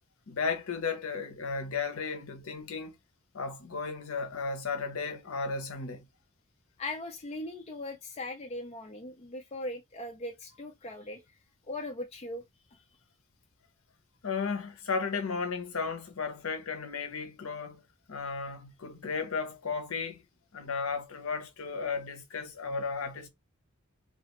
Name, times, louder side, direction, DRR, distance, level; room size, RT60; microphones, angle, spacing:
voice 1, 0.3-3.0 3.3-6.1 14.2-17.8 18.1-20.3 20.5-23.3, left 5 dB, 70° left, 0.7 m, -34 dB
voice 2, 6.8-11.2 11.7-12.4 12.7-12.8, left 2 dB, 30° left, 0.4 m, -39 dB
2.3 x 2.3 x 2.9 m
head